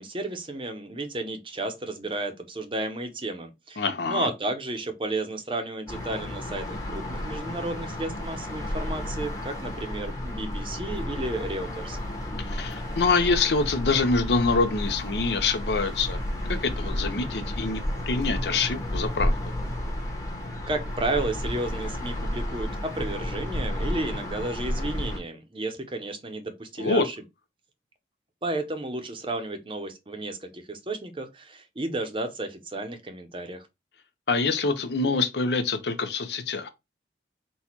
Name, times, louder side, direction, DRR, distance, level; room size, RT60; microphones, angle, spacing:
voice 1, 0.0-12.0 20.7-27.1 28.4-33.7, right 2 dB, 30° right, 0.7 m, -32 dB
voice 2, 3.8-4.3 12.5-16.2 16.5-19.4 26.8-27.1 34.3-36.7, left 4 dB, 70° left, 0.7 m, -25 dB
sound 1, 5.9-25.2, left 1 dB, 20° left, 1.1 m, -32 dB
4.2 x 2.3 x 4.3 m
head